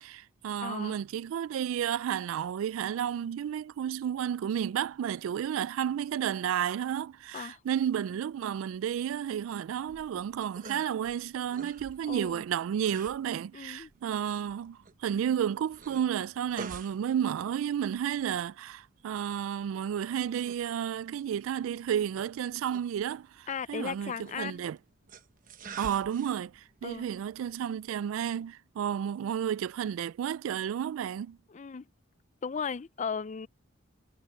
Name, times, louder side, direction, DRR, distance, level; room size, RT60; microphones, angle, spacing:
voice 1, 0.0-24.8 25.8-31.4, right 9 dB, 90° right, 0.3 m, -32 dB
voice 2, 0.6-1.0 7.3-7.6 12.0-12.4 13.5-13.9 23.5-24.6 26.8-27.1 31.5-31.9 32.4-33.5, left 6 dB, 35° left, 0.4 m, -36 dB
sound 1, 9.9-28.5, right 4 dB, 45° right, 1.1 m, -50 dB
head